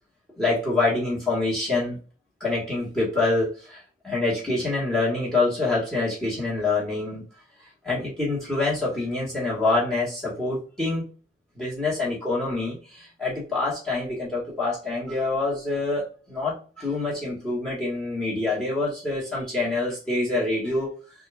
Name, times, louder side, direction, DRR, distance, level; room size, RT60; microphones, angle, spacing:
voice 1, 0.4-2.0 2.4-7.2 7.8-11.1 11.5-20.9, left 2 dB, 5° left, -5 dB, 1.6 m, -26 dB
4.1 x 2.5 x 3.5 m, 0.36 s
head